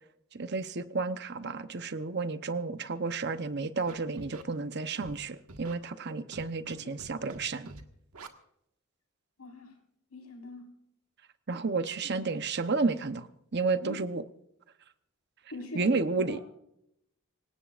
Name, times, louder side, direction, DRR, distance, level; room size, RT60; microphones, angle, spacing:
voice 1, 0.3-7.7 11.5-14.2 15.7-16.4, right 4 dB, 50° right, 11 dB, 0.9 m, -31 dB
Scratching (performance technique), 3.9-4.4 5.0-5.2 5.5-5.7 6.3-6.7 7.0-7.4 7.6-7.8 8.1-8.3, right 3 dB, 85° right, 1.7 m, -45 dB
voice 2, 9.4-9.7 10.1-10.6 11.8-12.1 13.8-14.0 15.5-16.0 16.3-16.4, left 2 dB, 85° left, 3 dB, 4.7 m, -43 dB
26.5 x 17.5 x 2.5 m, 0.77 s
head